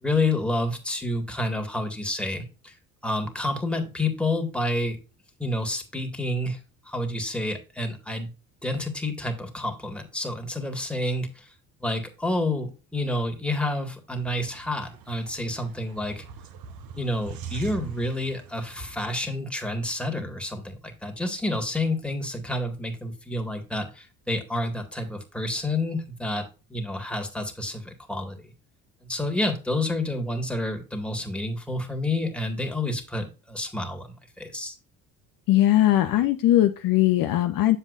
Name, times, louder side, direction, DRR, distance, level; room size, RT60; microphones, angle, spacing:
voice 1, 0.0-2.7 3.0-5.0 5.4-6.6 6.9-8.3 8.6-11.5 11.8-16.2 16.9-28.5 29.1-34.1 34.4-34.8, left 1 dB, ahead, 4 dB, 2.0 m, -29 dB
sound 1, 14.1-19.2, right 8 dB, 55° right, 1.2 m, -42 dB
voice 2, 35.5-37.8, left 14 dB, 50° left, 7 dB, 0.8 m, -20 dB
8.4 x 7.2 x 2.5 m, 0.31 s
hypercardioid pair, 60°, 43 cm